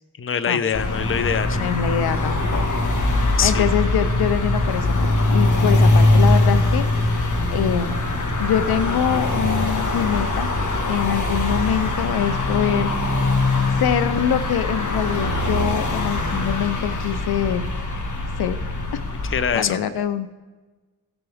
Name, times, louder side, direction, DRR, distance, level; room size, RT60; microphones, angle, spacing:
voice 1, 0.2-1.6 3.4-3.7 19.2-19.8, left 7 dB, 35° left, 13 dB, 0.7 m, -23 dB
sound 1, 0.7-19.5, left 2 dB, 50° left, 1.7 m, -21 dB
voice 2, 1.6-2.6 3.4-8.0 8.4-10.5 10.9-13.2 13.8-17.7 18.4-18.6 19.5-20.3, left 9 dB, 70° left, 12 dB, 0.7 m, -24 dB
17.0 x 7.0 x 3.5 m, 1.3 s
cardioid pair, 75°, 38 cm